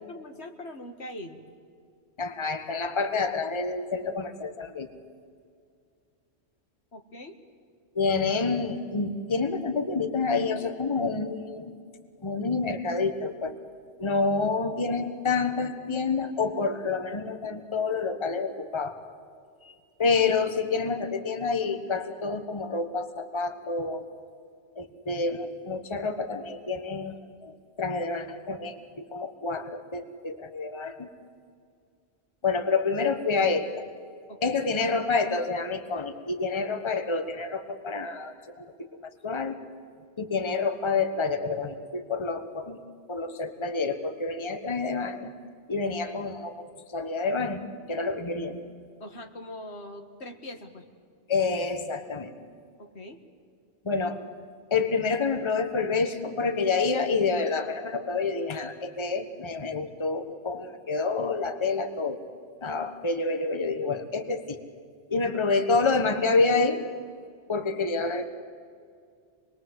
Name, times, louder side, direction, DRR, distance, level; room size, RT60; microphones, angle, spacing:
voice 1, 0.1-1.4 6.9-7.4 34.3-34.6 49.0-50.9 52.8-53.2, left 1 dB, 70° left, 5 dB, 2.0 m, -42 dB
voice 2, 2.2-4.9 7.9-11.8 12.2-13.5 14.0-19.0 19.6-19.7 20.0-24.0 24.8-31.1 32.4-33.8 34.4-38.7 39.2-39.6 40.2-42.8 43.1-45.3 45.7-47.6 47.9-48.6 51.3-52.3 53.8-54.2 54.7-62.2 62.6-64.6 65.1-66.9 67.5-68.2, left 4 dB, 25° left, 8 dB, 1.3 m, -28 dB
27.0 x 21.5 x 7.9 m, 2.2 s
omnidirectional pair, 1.1 m